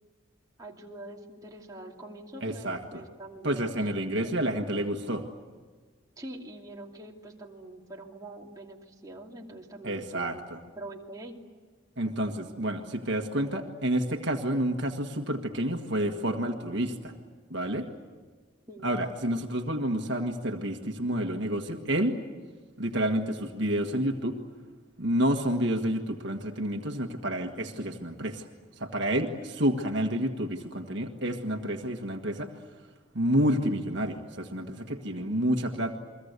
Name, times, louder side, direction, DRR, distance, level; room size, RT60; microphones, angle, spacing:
voice 1, 0.6-3.7 4.2-4.6 6.2-11.4 18.7-19.0 35.2-35.3, right 1 dB, 20° right, -1 dB, 2.6 m, -44 dB
voice 2, 2.4-3.0 3.4-5.2 9.8-10.6 12.0-17.1 17.5-17.9 18.8-22.2 22.8-24.4 25.0-28.5 28.7-32.5 33.1-36.0, right 1 dB, 60° right, 4 dB, 1.7 m, -29 dB
30.0 x 23.0 x 8.2 m, 1.5 s
head